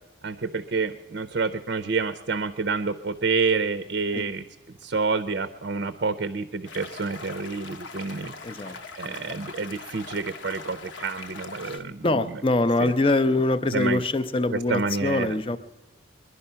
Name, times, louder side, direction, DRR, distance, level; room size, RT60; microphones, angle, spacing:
voice 1, 0.2-4.4 4.8-12.4 12.8-12.9 13.7-14.0 14.5-15.3, right 4 dB, 55° right, 11 dB, 0.6 m, -28 dB
sound 1, 6.6-11.8, left 4 dB, 60° left, 0.8 m, -41 dB
voice 2, 8.4-8.8 9.1-9.2 11.6-15.6, left 2 dB, 25° left, 12 dB, 0.5 m, -24 dB
22.0 x 11.5 x 5.6 m, 1.2 s
head